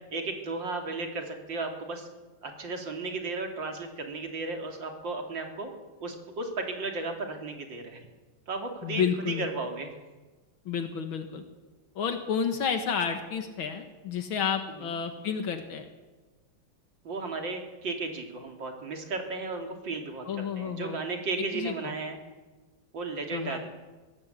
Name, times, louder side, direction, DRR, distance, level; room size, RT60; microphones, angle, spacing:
voice 1, 0.1-2.1 2.4-5.7 6.0-8.1 8.5-9.9 14.8-15.0 17.0-22.2 22.9-23.7, right 3 dB, 65° right, 3 dB, 3.5 m, -34 dB
voice 2, 8.8-9.4 10.7-11.4 12.0-15.8 20.3-21.0 21.5-22.0 23.3-23.7, left 7 dB, 80° left, 6 dB, 2.3 m, -31 dB
23.5 x 16.0 x 8.3 m, 1.3 s
omnidirectional pair, 2.2 m